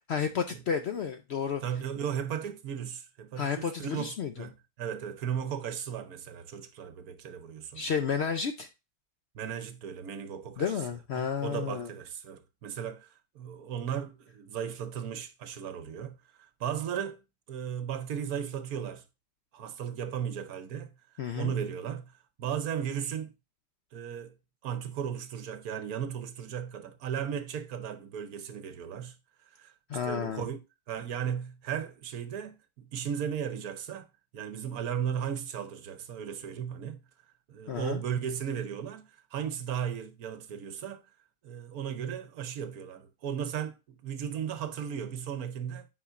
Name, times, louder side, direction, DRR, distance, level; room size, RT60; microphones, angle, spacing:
voice 1, 0.1-1.6 3.4-4.3 7.7-8.7 10.6-11.9 21.2-21.5 29.9-30.4 37.7-38.0, left 7 dB, 65° left, 0.7 m, -31 dB
voice 2, 1.6-7.8 9.3-10.7 11.1-13.1 13.3-17.2 17.5-19.0 19.5-20.9 21.3-22.1 22.4-23.3 23.9-24.3 24.6-29.2 29.5-30.6 30.9-34.1 34.3-37.0 37.5-41.0 41.4-45.9, right 8 dB, 70° right, 1.2 m, -36 dB
8.4 x 5.0 x 2.4 m
omnidirectional pair, 1.6 m